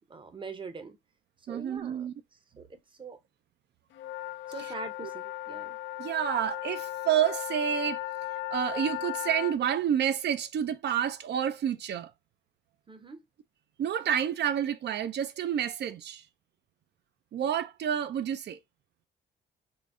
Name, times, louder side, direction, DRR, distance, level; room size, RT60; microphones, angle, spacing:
voice 1, 0.1-1.0 1.5-2.1 2.6-2.7 3.0-3.2 4.5-5.8 12.9-13.2, right 4 dB, 25° right, 0.7 m, -42 dB
voice 2, 1.5-2.1 4.6-4.7 6.0-8.0 8.5-12.1 13.8-16.2 17.3-18.6, right 9 dB, 60° right, 0.5 m, -29 dB
sound 1, 3.9-9.6, left 15 dB, 75° left, 0.5 m, -36 dB
3.8 x 2.0 x 3.6 m
cardioid pair, 90°, 20 cm